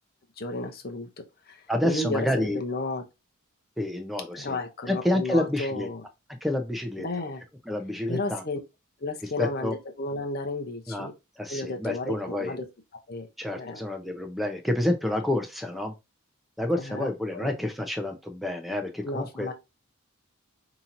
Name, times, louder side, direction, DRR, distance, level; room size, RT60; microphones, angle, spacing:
voice 1, 0.4-1.1 1.5-3.0 4.3-6.0 7.0-7.4 8.1-8.6 9.0-11.1 11.5-12.7 13.1-13.3 13.5-13.8 16.8-17.5 19.0-19.5, left 2 dB, 45° left, 0.8 m, -33 dB
voice 2, 1.7-2.6 3.8-4.6 4.9-5.9 6.4-7.1 7.7-8.4 9.4-9.7 10.9-11.1 11.4-12.6 13.4-15.9 16.6-19.5, left 1 dB, ahead, 0.7 m, -28 dB
5.4 x 2.9 x 2.6 m
head